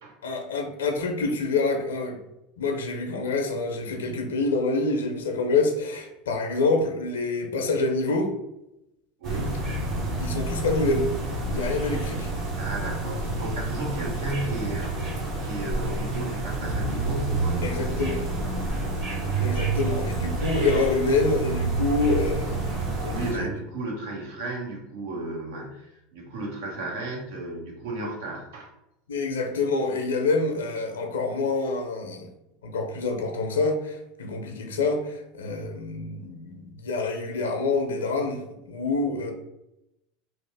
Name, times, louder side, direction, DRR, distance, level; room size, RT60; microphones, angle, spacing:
voice 1, 0.2-2.2 2.6-8.3 10.2-11.1 11.5-12.3 17.6-18.2 19.4-23.5 29.1-32.3 32.6-39.3, left 3 dB, 90° left, 3 dB, 0.5 m, -26 dB
sound 1, 9.2-23.3, right 2 dB, 50° right, 1.1 m, -28 dB
voice 2, 9.2-9.8 12.5-15.1 15.4-18.1 18.4-18.7 19.2-19.3 23.1-28.7, right 2 dB, 75° right, -1 dB, 0.9 m, -34 dB
2.9 x 2.0 x 3.3 m, 0.87 s
hypercardioid pair, 90°, 0 cm